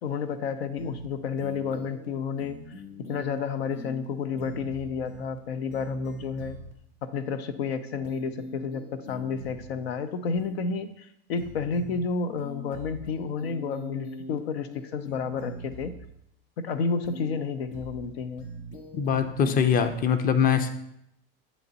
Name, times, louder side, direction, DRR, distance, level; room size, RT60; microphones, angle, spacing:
voice 1, 0.0-2.6 3.1-6.6 7.0-15.9 16.6-18.5, left 5 dB, 90° left, 12 dB, 0.5 m, -31 dB
sound 1, 0.8-1.1 1.4-2.1 2.4-3.4 3.7-4.1 4.4-5.4 5.7-6.7 8.0-9.7 10.4-10.7 11.4-12.1 12.4-14.4 14.7-16.1 17.0-17.4 17.7-18.1 18.4-19.9, right 1 dB, 65° left, 1.1 m, -42 dB
voice 2, 18.9-20.7, left 7 dB, 30° left, 10 dB, 0.6 m, -23 dB
8.9 x 3.0 x 4.0 m, 0.77 s
hypercardioid pair, 100°, 30 cm